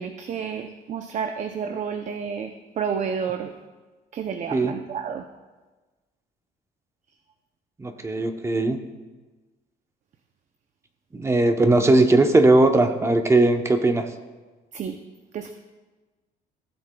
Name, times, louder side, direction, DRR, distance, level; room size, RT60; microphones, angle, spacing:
voice 1, 0.0-3.5 4.1-5.2 14.7-15.0 15.3-15.5, right 7 dB, 45° right, 7 dB, 0.6 m, -30 dB
voice 2, 7.8-8.8 11.1-14.1, right 2 dB, 15° right, 7 dB, 0.8 m, -19 dB
17.0 x 7.6 x 2.3 m, 1.3 s
cardioid pair, 110°, 17 cm